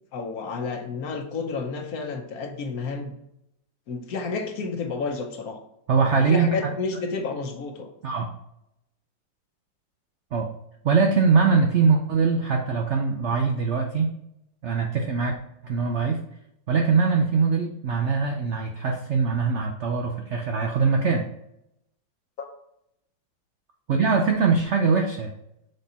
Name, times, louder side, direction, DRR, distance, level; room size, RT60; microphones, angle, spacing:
voice 1, 0.1-3.1 3.9-5.6 6.1-7.9, left 4 dB, 60° left, 4 dB, 1.2 m, -30 dB
voice 2, 5.9-6.7 8.0-8.3 10.3-10.5 10.8-14.1 14.6-15.3 15.6-16.2 16.7-21.3 23.9-25.3, right 5 dB, 85° right, 3 dB, 0.6 m, -22 dB
6.5 x 4.3 x 4.2 m, 0.80 s
omnidirectional pair, 2.0 m